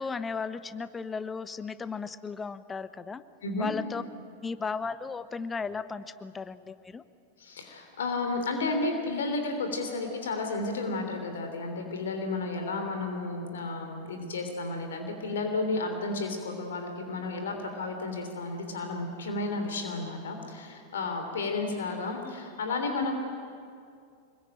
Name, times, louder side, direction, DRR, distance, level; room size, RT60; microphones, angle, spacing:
voice 1, 0.0-3.2 3.6-4.0 4.4-7.0, left 5 dB, 15° left, 14 dB, 1.0 m, -35 dB
voice 2, 3.4-3.7 7.4-23.1, left 3 dB, 65° left, 5 dB, 3.3 m, -32 dB
25.5 x 22.5 x 9.1 m, 2.3 s
figure-of-eight pair, 90°, 0 cm